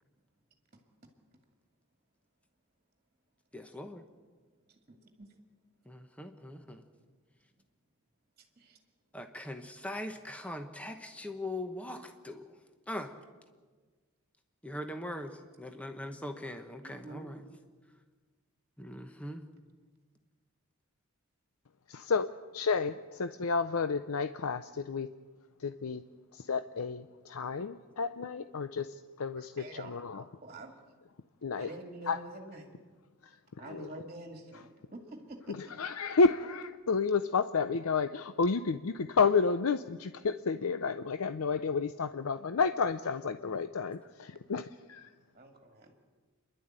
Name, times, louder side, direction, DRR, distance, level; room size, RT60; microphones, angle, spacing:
voice 1, 3.5-4.0 5.9-6.8 9.1-12.4 12.9-13.1 14.6-17.4 18.8-19.4, left 1 dB, 5° left, 6 dB, 1.1 m, -41 dB
voice 2, 4.7-5.3 8.6-8.8 16.8-17.3 29.3-30.7 31.6-32.7 33.6-35.7 45.3-45.9, right 2 dB, 30° right, 3 dB, 2.1 m, -47 dB
voice 3, 21.9-25.1 25.6-26.0 26.3-28.9 29.2-30.2 31.4-31.7 32.1-32.2 33.7-33.9 35.8-45.1, left 4 dB, 85° left, 11 dB, 0.6 m, -31 dB
29.0 x 11.5 x 8.9 m, 1.4 s
head